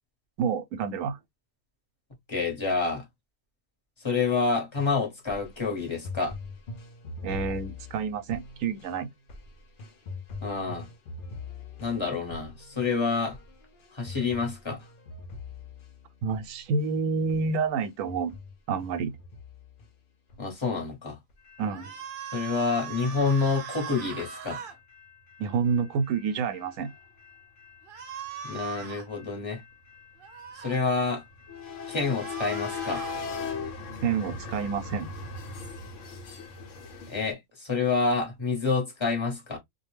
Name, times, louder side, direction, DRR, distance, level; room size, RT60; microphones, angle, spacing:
voice 1, 0.4-1.2 7.2-9.1 16.2-18.3 18.7-19.1 21.6-21.9 25.4-26.9 34.0-35.1, right 5 dB, 90° right, 1.0 m, -28 dB
voice 2, 2.3-3.0 4.0-6.3 10.4-10.9 11.8-13.4 13.9-14.8 20.4-21.2 22.3-24.6 28.4-29.6 30.5-31.2 31.9-33.0 37.1-39.6, left 4 dB, 25° left, 1.1 m, -28 dB
sound 1, 4.7-16.9 17.3-17.5 17.8-19.9 20.3-20.9 21.3-21.4, left 4 dB, 55° left, 0.6 m, -43 dB
sound 2, 21.5-37.3, left 4 dB, 75° left, 1.1 m, -41 dB
sound 3, 21.7-24.8 27.9-29.1 30.2-30.8 32.0-33.2, right 8 dB, 55° right, 0.7 m, -40 dB
2.5 x 2.2 x 3.1 m
omnidirectional pair, 1.3 m